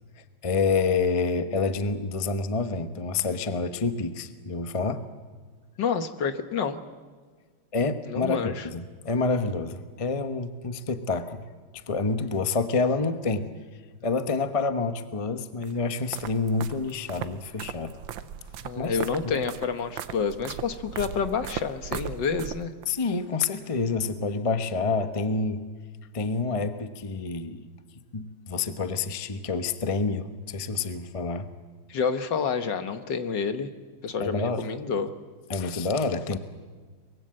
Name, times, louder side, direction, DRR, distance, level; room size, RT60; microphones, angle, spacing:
voice 1, 0.4-5.1 7.7-11.5 11.7-13.5 14.0-18.0 18.8-19.3 22.9-25.6 26.1-27.7 28.1-31.5 34.2-34.6 35.5-36.4, left 4 dB, 25° left, 10 dB, 0.7 m, -28 dB
voice 2, 5.8-6.8 8.1-8.7 18.6-22.7 31.9-33.7 34.0-35.1, left 5 dB, 60° left, 10 dB, 1.8 m, -28 dB
sound 1, 15.6-22.9, right 9 dB, 70° right, 1.5 m, -38 dB
24.0 x 22.0 x 7.7 m, 1.5 s
omnidirectional pair, 2.3 m